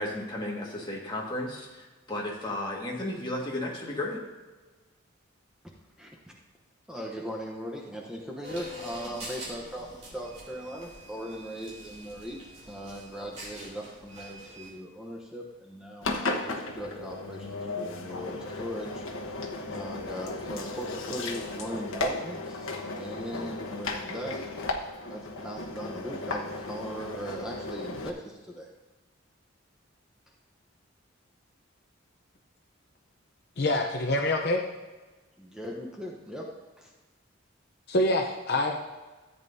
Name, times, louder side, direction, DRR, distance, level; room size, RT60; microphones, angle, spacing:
voice 1, 0.0-4.2, left 1 dB, 20° left, -3 dB, 1.8 m, -34 dB
voice 2, 6.0-6.4 6.9-24.5 25.1-28.7 35.4-36.4, equal, 5° right, -1 dB, 0.9 m, -39 dB
sound 1, 8.4-14.7, equal, 35° right, 3.1 m, -45 dB
Engine, 16.0-28.1, left 2 dB, 80° left, 1.1 m, -35 dB
voice 3, 33.6-34.6 37.9-38.8, left 1 dB, 50° left, 3 dB, 0.7 m, -25 dB
14.0 x 9.0 x 2.7 m, 1.2 s
head